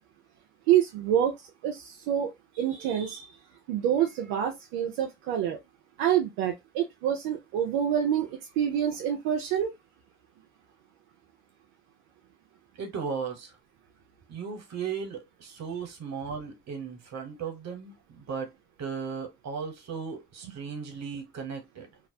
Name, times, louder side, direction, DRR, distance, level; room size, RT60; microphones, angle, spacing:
voice 1, 0.7-3.3 3.7-5.6 6.0-9.7, right 10 dB, 90° right, 0.5 m, -27 dB
voice 2, 12.8-13.5 14.3-18.5 18.8-21.9, right 6 dB, 55° right, 1.1 m, -36 dB
2.3 x 2.0 x 2.6 m
supercardioid pair, 55°, 32 cm